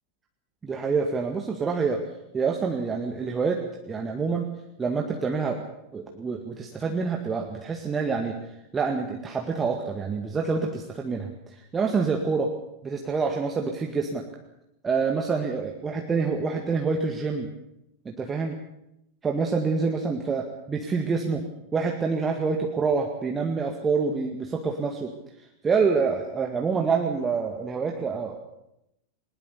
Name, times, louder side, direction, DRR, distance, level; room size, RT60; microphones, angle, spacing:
voice 1, 0.6-2.0 2.3-4.5 4.8-5.6 5.9-8.3 8.7-12.5 12.8-14.2 14.8-17.5 18.1-18.6 19.2-21.4 21.7-25.1 25.6-28.4, right 5 dB, 15° right, 2 dB, 2.0 m, -27 dB
20.5 x 20.0 x 6.9 m, 0.84 s
figure-of-eight pair, 90°, 0 cm